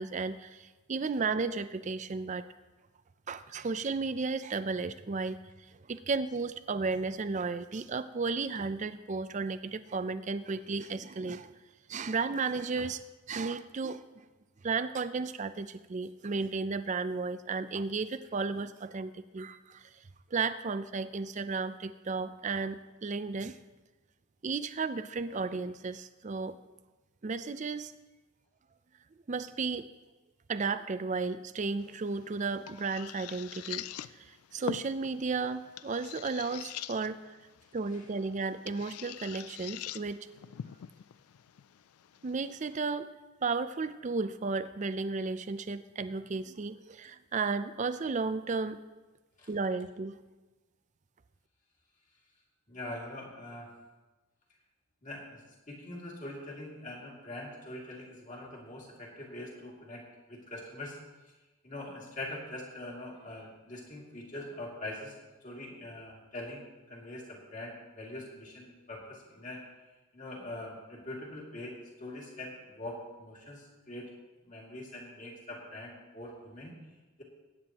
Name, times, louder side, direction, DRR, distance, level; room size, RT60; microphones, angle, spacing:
voice 1, 0.0-2.5 3.3-5.4 5.9-11.5 11.9-13.0 13.3-14.1 14.6-19.9 20.3-23.6 24.4-26.6 27.2-27.9 29.3-29.9 30.5-33.8 34.1-37.2 37.7-40.2 42.2-43.1 43.4-48.8 49.5-50.2, right 4 dB, 35° right, 13 dB, 0.4 m, -34 dB
sound 1, 31.8-42.8, left 10 dB, 85° left, 0.4 m, -45 dB
voice 2, 52.7-53.7 55.0-55.4 55.7-60.0 60.3-61.0 61.6-65.2 65.4-69.6 70.1-74.1 74.4-76.7, left 1 dB, 35° left, -3 dB, 2.4 m, -43 dB
20.5 x 9.3 x 2.9 m, 1.2 s
head